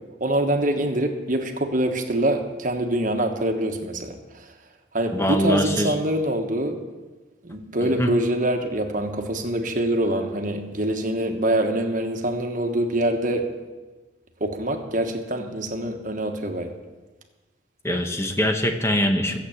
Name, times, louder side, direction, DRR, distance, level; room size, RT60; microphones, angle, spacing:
voice 1, 0.2-4.5 4.9-6.8 7.4-13.5 14.4-16.7, right 1 dB, 40° right, 4 dB, 1.4 m, -25 dB
voice 2, 5.1-5.9 7.8-8.1 17.8-19.4, equal, 15° left, 5 dB, 1.1 m, -23 dB
15.0 x 8.1 x 7.3 m, 1.2 s
head